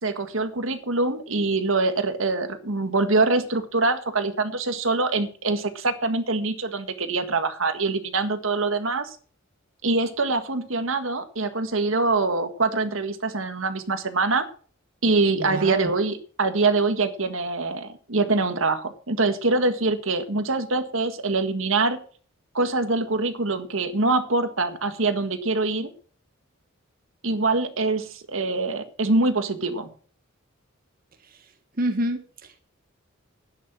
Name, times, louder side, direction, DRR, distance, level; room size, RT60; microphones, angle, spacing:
voice 1, 0.0-9.2 9.8-14.5 15.0-22.0 22.5-25.9 27.2-29.9, right 3 dB, 70° right, 9 dB, 1.7 m, -24 dB
voice 2, 15.4-15.9 31.2-31.5 31.8-32.6, right 1 dB, 45° right, 7 dB, 1.3 m, -28 dB
11.5 x 9.9 x 6.0 m, 0.43 s
head